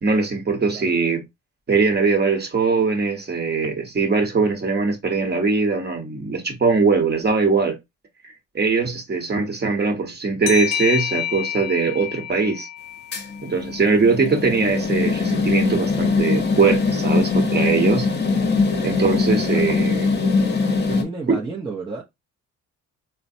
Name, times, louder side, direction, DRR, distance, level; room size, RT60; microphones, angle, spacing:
voice 1, 0.0-1.2 1.7-7.8 8.5-12.7 13.4-18.1 18.8-20.1 21.3-21.4, right 4 dB, 35° right, 1.1 m, -21 dB
sound 1, 10.5-13.8, left 10 dB, 60° left, 0.5 m, -29 dB
sound 2, 13.1-21.0, left 4 dB, 35° left, 0.8 m, -21 dB
voice 2, 20.9-22.0, right 4 dB, 15° right, 0.7 m, -32 dB
3.9 x 2.1 x 2.6 m
cardioid pair, 90°, 30 cm